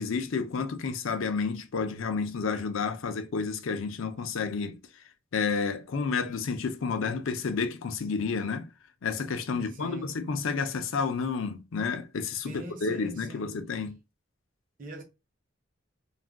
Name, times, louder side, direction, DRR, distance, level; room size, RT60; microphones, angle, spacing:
voice 1, 0.0-4.8 5.3-8.7 9.0-14.0, left 5 dB, 75° left, 0.5 m, -30 dB
voice 2, 9.5-10.2 12.4-13.8 14.8-15.0, equal, 40° right, 0.6 m, -43 dB
2.4 x 2.2 x 3.4 m
head